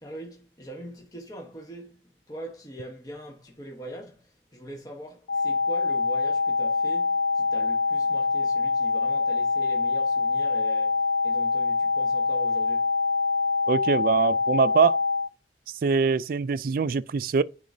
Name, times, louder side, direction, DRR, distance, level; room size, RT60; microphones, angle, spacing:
voice 1, 0.0-12.9, right 1 dB, 20° left, 1.1 m, -42 dB
sound 1, 5.3-15.3, left 4 dB, 70° left, 0.4 m, -25 dB
voice 2, 13.7-15.0 15.8-17.4, right 5 dB, 50° right, 0.3 m, -23 dB
9.6 x 3.7 x 2.6 m
head